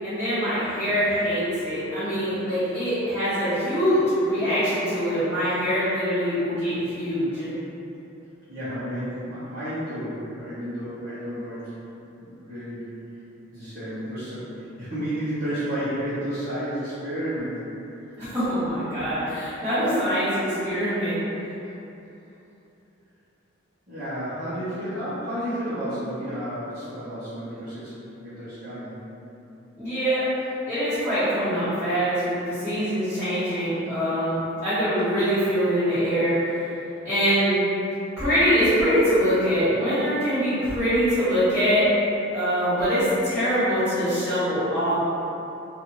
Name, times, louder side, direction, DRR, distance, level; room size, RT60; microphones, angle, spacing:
voice 1, 0.0-7.5 18.2-21.2 29.8-30.3 30.7-36.3 37.0-37.6 38.2-41.9 42.3-45.0, equal, 10° right, -22 dB, 1.4 m, -23 dB
voice 2, 8.5-11.7 12.2-12.8 13.5-17.7 23.9-27.9 28.2-28.9, equal, 40° right, -17 dB, 0.8 m, -31 dB
2.5 x 2.5 x 2.9 m, 2.9 s
head